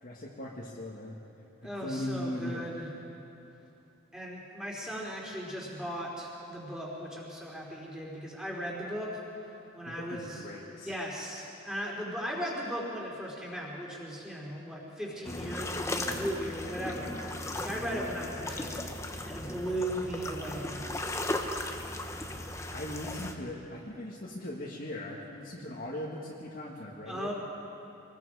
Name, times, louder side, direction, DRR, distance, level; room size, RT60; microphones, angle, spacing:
voice 1, 0.0-1.2 1.6-2.6 9.8-10.9 22.7-27.3, left 1 dB, 45° left, -5 dB, 1.9 m, -39 dB
voice 2, 1.6-2.9 4.1-9.2 9.7-10.4 10.8-17.2 17.5-18.8 19.3-20.9 27.1-27.3, equal, 5° right, -4 dB, 3.8 m, -37 dB
sound 1, 15.2-23.3, left 1 dB, 15° left, 1.0 m, -36 dB
26.5 x 20.5 x 4.9 m, 2.9 s
head